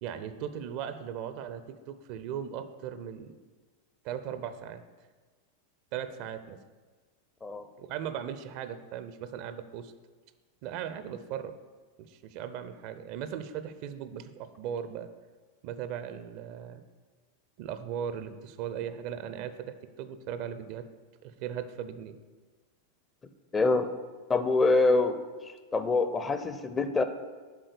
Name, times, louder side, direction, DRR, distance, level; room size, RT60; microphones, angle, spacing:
voice 1, 0.0-3.3 4.0-4.8 5.9-6.6 7.8-9.9 10.6-11.5 12.0-15.1 15.6-16.8 17.6-20.8 21.2-22.2, right 9 dB, 45° right, 11 dB, 0.5 m, -38 dB
voice 2, 23.5-23.9 24.3-25.2 25.7-27.0, left 3 dB, 20° left, 10 dB, 0.5 m, -25 dB
8.2 x 3.7 x 6.8 m, 1.4 s
figure-of-eight pair, 90°, 0 cm